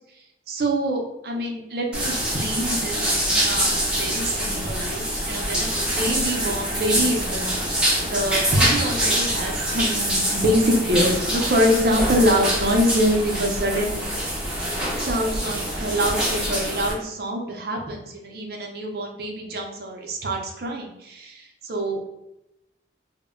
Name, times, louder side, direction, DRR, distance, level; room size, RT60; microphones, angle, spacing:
voice 1, 0.5-7.6 8.1-14.3 15.0-22.1, equal, 60° right, 1 dB, 0.5 m, -25 dB
sound 1, 1.9-16.9, right 1 dB, 5° right, 0.6 m, -25 dB
2.1 x 2.1 x 3.5 m, 0.88 s
head